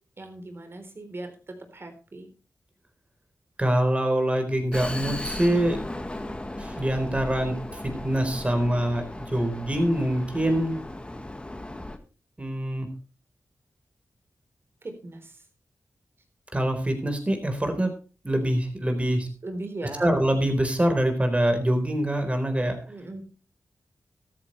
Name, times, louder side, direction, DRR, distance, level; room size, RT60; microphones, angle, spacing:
voice 1, 0.2-2.3 14.8-15.4 19.4-20.2 22.9-23.2, right 2 dB, 45° right, 6 dB, 3.9 m, -38 dB
voice 2, 3.6-5.8 6.6-10.8 12.4-12.9 16.5-17.9 18.2-19.3 20.0-22.8, right 1 dB, 20° right, 6 dB, 4.1 m, -25 dB
Vehicle, 4.7-12.0, left 1 dB, 20° left, 1.7 m, -36 dB
14.0 x 13.5 x 3.3 m, 0.34 s
cardioid pair, 75°, 6 cm